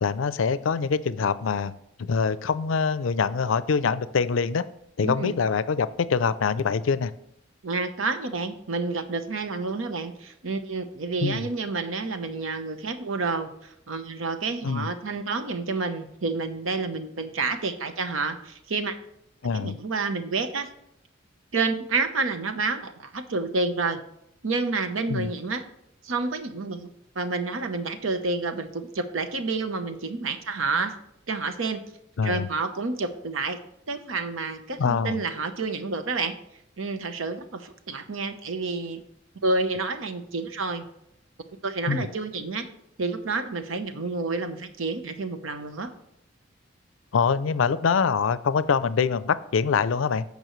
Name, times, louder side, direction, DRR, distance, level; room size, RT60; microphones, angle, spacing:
voice 1, 0.0-1.7 2.0-4.6 5.0-7.1 11.2-11.5 14.6-14.9 19.4-19.8 25.1-25.3 32.2-32.5 34.8-35.2 41.9-42.1 47.1-50.2, left 5 dB, 75° left, 15 dB, 0.4 m, -24 dB
voice 2, 5.0-5.3 7.6-18.9 19.5-20.7 21.5-24.0 24.4-25.6 26.0-26.9 27.1-31.0 31.3-31.8 32.2-33.6 33.9-36.3 36.8-39.0 39.4-40.9 41.6-42.7 43.0-45.9, right 3 dB, 85° right, 9 dB, 0.9 m, -29 dB
15.5 x 5.3 x 3.1 m, 0.76 s
head